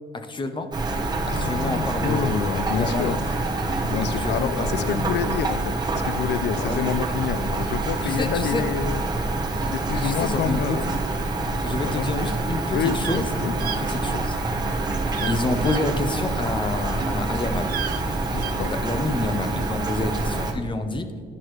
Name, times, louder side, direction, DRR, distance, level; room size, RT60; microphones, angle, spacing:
voice 1, 0.3-0.7 1.3-2.5 2.8-3.2 4.2-5.2 6.5-6.8 8.0-8.6 9.9-10.6 11.6-13.3 13.6-14.4 15.3-17.7 18.7-21.1, left 2 dB, 25° left, 7 dB, 0.7 m, -28 dB
Rain, 0.7-20.5, right 2 dB, 20° right, 0.9 m, -26 dB
voice 2, 1.2-3.5 3.8-9.0 9.7-10.9 12.0-12.1 12.7-13.5 15.2-15.3 18.3-18.7, left 9 dB, 70° left, 15 dB, 0.4 m, -28 dB
sound 1, 13.0-13.2 13.6-13.8 15.1-15.4 15.6-15.8 17.6-18.5, right 9 dB, 55° right, 0.4 m, -32 dB
10.5 x 6.3 x 3.1 m, 2.3 s
cardioid pair, 125°, 18 cm